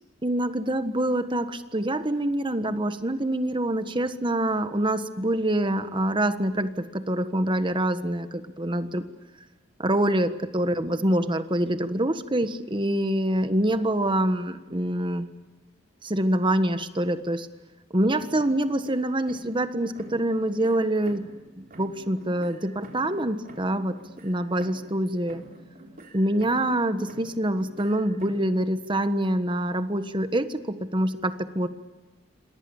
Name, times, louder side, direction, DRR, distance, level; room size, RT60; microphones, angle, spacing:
voice 1, 0.2-9.0 9.8-15.3 16.0-17.5 17.9-25.4 26.1-31.7, right 1 dB, 25° right, 10 dB, 1.4 m, -25 dB
sound 1, 18.2-19.7 20.0-21.5 21.7-25.0 25.3-26.8 27.1-28.5, right 1 dB, 45° right, 4.1 m, -48 dB
28.0 x 26.5 x 7.2 m, 1.1 s
head